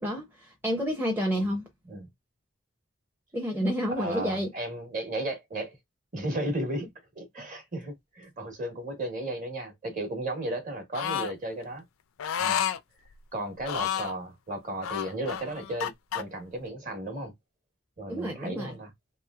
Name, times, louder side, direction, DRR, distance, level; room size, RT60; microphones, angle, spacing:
voice 1, 0.0-1.7 3.3-4.5 18.1-18.7, equal, 10° right, 0.6 m, -29 dB
voice 2, 4.0-5.8 6.1-11.8 12.4-12.6 13.3-17.3 18.0-18.9, right 1 dB, 40° right, 1.1 m, -34 dB
sound 1, 10.9-11.3 12.2-12.8 13.6-14.2 14.8-16.2, left 9 dB, 75° left, 0.4 m, -30 dB
3.0 x 2.9 x 2.3 m
head